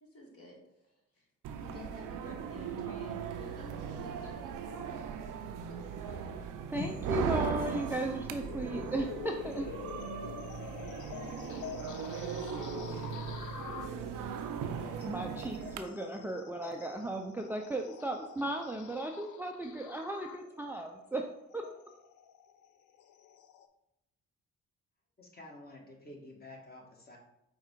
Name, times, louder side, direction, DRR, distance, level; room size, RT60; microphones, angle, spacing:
voice 1, 0.0-5.0 5.3-5.8, left 2 dB, 45° left, -1 dB, 1.7 m, -52 dB
sound 1, 1.4-15.8, right 7 dB, 65° right, 0.6 m, -38 dB
sound 2, 6.7-23.7, left 8 dB, 60° left, 0.5 m, -47 dB
voice 2, 6.7-9.7 15.0-21.2 21.5-21.6, right 1 dB, 5° right, 3 dB, 0.5 m, -36 dB
voice 3, 12.7-13.1 25.2-27.2, left 1 dB, 25° left, 0 dB, 1.6 m, -51 dB
4.8 x 2.4 x 4.5 m, 0.86 s
hypercardioid pair, 50°, 34 cm